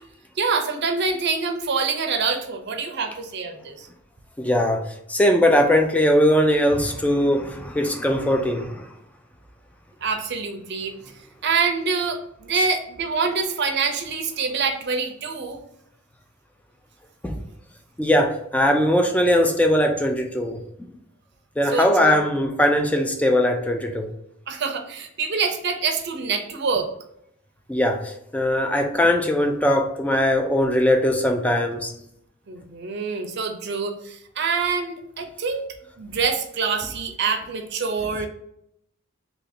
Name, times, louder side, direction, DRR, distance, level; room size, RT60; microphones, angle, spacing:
voice 1, 0.4-3.9 10.0-11.0 11.4-15.6 21.7-22.2 24.5-26.9 32.5-35.7 36.0-38.3, right 5 dB, 55° right, 0.5 m, -25 dB
voice 2, 4.4-8.9 12.5-12.6 17.2-17.4 18.0-20.9 21.6-24.1 27.7-31.9, left 1 dB, 5° left, 0.3 m, -20 dB
2.8 x 2.6 x 4.1 m
head